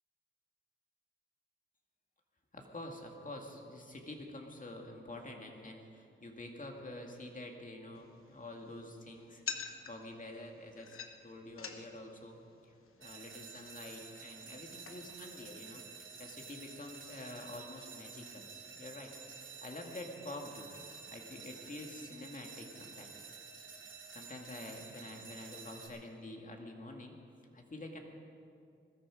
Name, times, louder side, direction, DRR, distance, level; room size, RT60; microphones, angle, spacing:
voice 1, 2.5-9.4 9.9-15.8 16.2-19.1 19.6-20.7 21.1-23.2 24.1-27.2 27.5-28.0, left 1 dB, 40° left, 2 dB, 2.4 m, -47 dB
sound 1, 7.9-15.2, left 7 dB, 90° left, 1.0 m, -49 dB
sound 2, 13.0-25.9, right 5 dB, 65° right, 2.8 m, -51 dB
20.5 x 13.5 x 5.0 m, 2.4 s
cardioid pair, 65°, 21 cm